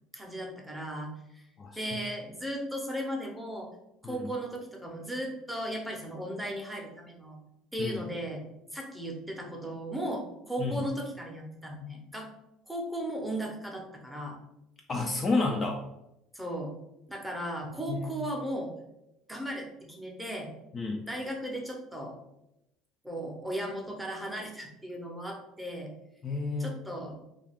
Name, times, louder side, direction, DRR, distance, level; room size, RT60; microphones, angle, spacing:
voice 1, 0.1-1.4 1.8-3.7 4.0-7.4 7.7-8.4 8.7-12.3 12.7-14.4 16.3-16.7 17.1-18.7 19.3-20.5 21.1-22.2 23.0-25.9 26.6-27.2, equal, 5° right, 0 dB, 0.7 m, -36 dB
voice 2, 14.9-15.8 17.6-18.2 20.7-21.0 26.2-26.8, left 3 dB, 30° left, 1 dB, 0.3 m, -31 dB
2.3 x 2.3 x 3.4 m, 0.87 s
supercardioid pair, 105°, 0 cm